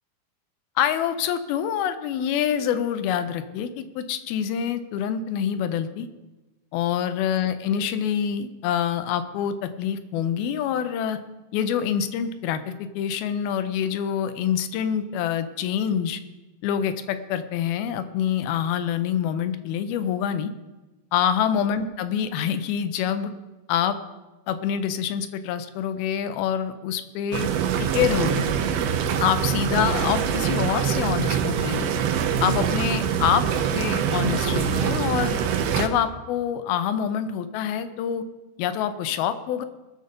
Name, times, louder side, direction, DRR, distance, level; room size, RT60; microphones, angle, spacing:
voice 1, 0.8-6.1 6.7-11.2 11.5-16.2 16.6-20.5 21.1-23.3 23.7-24.0 24.5-27.5 27.8-28.5 29.2-31.9 32.4-33.4 33.7-35.4 35.7-38.3 38.6-39.7, left 9 dB, 80° left, 11 dB, 2.6 m, -26 dB
sound 1, 27.3-35.9, right 8 dB, 85° right, 2.7 m, -24 dB
20.0 x 6.8 x 5.1 m, 1.1 s
omnidirectional pair, 4.5 m